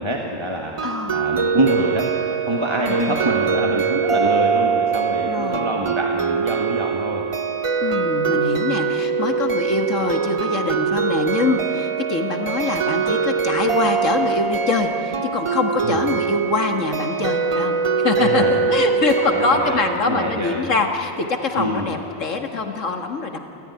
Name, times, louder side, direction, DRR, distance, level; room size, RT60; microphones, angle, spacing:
voice 1, 0.0-0.7 1.1-2.1 2.4-7.3 15.8-16.0 18.2-18.6 19.3-20.7 21.6-22.0, right 1 dB, 20° right, 0 dB, 1.8 m, -25 dB
voice 2, 0.8-1.3 2.9-3.2 5.3-5.7 7.8-23.4, left 4 dB, 70° left, 4 dB, 2.1 m, -24 dB
sound 1, 0.8-20.0, right 5 dB, 35° right, 0.5 m, -23 dB
29.0 x 14.5 x 9.7 m, 2.9 s
omnidirectional pair, 1.4 m